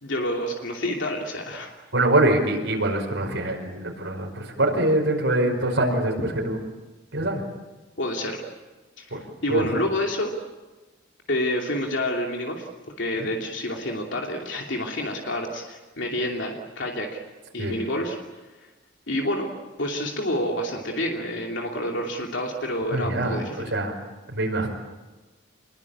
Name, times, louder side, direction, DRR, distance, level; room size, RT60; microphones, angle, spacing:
voice 1, 0.0-1.7 8.0-8.4 9.0-10.3 11.3-12.7 13.0-17.1 17.5-18.2 18.6-18.7 19.1-19.5 19.8-23.7, left 1 dB, 75° left, 0 dB, 2.9 m, -28 dB
voice 2, 1.9-6.6 7.1-7.4 9.1-9.2 9.5-9.7 13.2-13.3 17.6-17.8 22.9-23.9 24.3-24.7, right 1 dB, 80° right, 1 dB, 5.2 m, -24 dB
27.5 x 22.0 x 8.7 m, 1.2 s
head